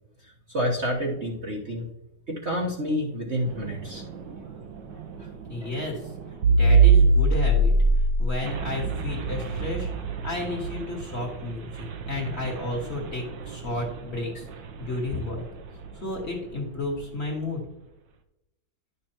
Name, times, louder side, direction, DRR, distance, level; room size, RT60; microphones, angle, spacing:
voice 1, 0.5-1.9 2.3-4.0 5.2-5.3 5.6-5.7, equal, 40° right, -3 dB, 1.3 m, -28 dB
sound 1, 3.4-16.2, right 3 dB, 70° right, 1.5 m, -25 dB
voice 2, 5.5-6.0 6.6-7.7 8.2-9.9 10.2-14.4 14.8-15.4 16.0-17.6, left 2 dB, 35° left, 0 dB, 1.9 m, -32 dB
11.0 x 6.7 x 2.9 m, 0.88 s
omnidirectional pair, 2.2 m